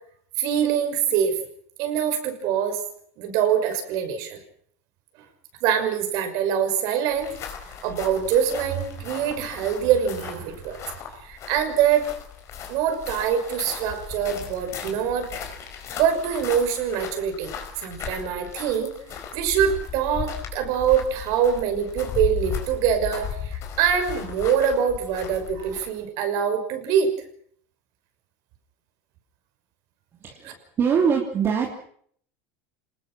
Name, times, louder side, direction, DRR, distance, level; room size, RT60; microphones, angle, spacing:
voice 1, 0.4-1.4 1.8-2.8 3.2-4.4 5.6-7.3 7.8-10.8 11.2-12.0 12.7-15.3 16.0-17.5 17.8-18.9 19.3-27.1 30.4-30.5, right 8 dB, 65° right, 6 dB, 5.9 m, -24 dB
sound 1, 7.1-26.0, left 8 dB, 45° left, 4.9 m, -36 dB
voice 2, 30.2-31.8, right 6 dB, 35° right, 0 dB, 3.2 m, -23 dB
27.0 x 20.0 x 6.2 m, 0.62 s
supercardioid pair, 125°, 7 cm